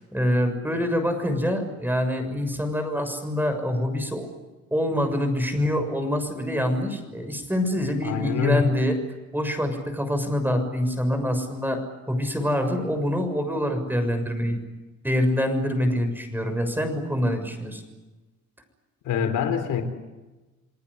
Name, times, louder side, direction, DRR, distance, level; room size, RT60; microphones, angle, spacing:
voice 1, 0.1-4.3 4.7-9.0 9.3-11.8 12.1-14.6 15.0-17.8, equal, 5° right, 7 dB, 6.8 m, -25 dB
voice 2, 8.0-8.7 19.0-19.8, left 7 dB, 80° left, 7 dB, 3.7 m, -24 dB
28.5 x 19.0 x 10.0 m, 1.1 s
cardioid pair, 90°, 30 cm